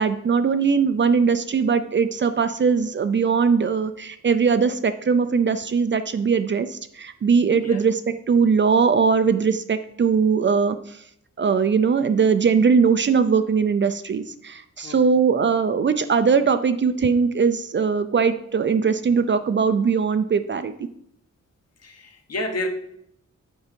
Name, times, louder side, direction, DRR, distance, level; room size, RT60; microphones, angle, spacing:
voice 1, 0.0-8.0 8.3-10.8 11.4-20.7, right 5 dB, 40° right, 10 dB, 0.4 m, -20 dB
voice 2, 14.8-15.2 21.8-22.7, left 1 dB, 55° left, 4 dB, 1.2 m, -30 dB
8.1 x 4.6 x 5.2 m, 0.71 s
wide cardioid pair, 175°, 30 cm